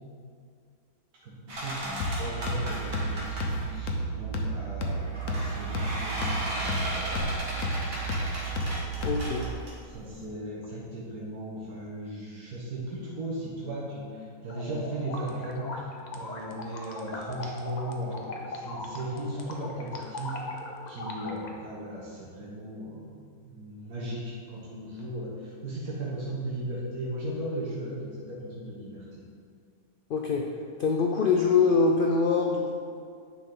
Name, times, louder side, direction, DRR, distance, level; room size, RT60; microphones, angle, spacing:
voice 1, 1.2-7.2 7.7-8.0 9.9-20.5 20.9-23.2 23.5-29.2, right 1 dB, 85° right, -6 dB, 1.7 m, -37 dB
sound 1, 1.5-3.8 4.9-10.3, equal, 70° right, 2.0 m, -36 dB
sound 2, 2.0-9.5, right 1 dB, 65° left, 1.1 m, -32 dB
voice 2, 9.0-9.5 30.1-30.5 30.8-32.7, left 4 dB, 85° left, 1 dB, 0.4 m, -24 dB
sound 3, 14.5-21.5, left 2 dB, 40° left, 0.6 m, -39 dB
9.1 x 5.4 x 3.8 m, 2.2 s
omnidirectional pair, 1.5 m